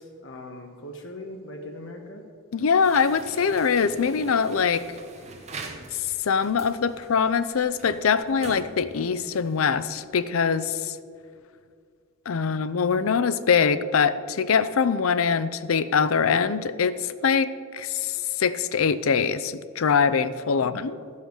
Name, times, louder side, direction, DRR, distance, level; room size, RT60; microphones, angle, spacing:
voice 1, 0.0-2.2 20.5-21.1, left 1 dB, 65° left, 2 dB, 1.1 m, -40 dB
voice 2, 2.5-4.9 5.9-11.0 12.3-20.9, left 6 dB, 85° left, 13 dB, 0.5 m, -23 dB
sound 1, 2.8-10.0, right 3 dB, 35° right, 0.9 m, -44 dB
13.0 x 5.6 x 6.4 m, 2.2 s
head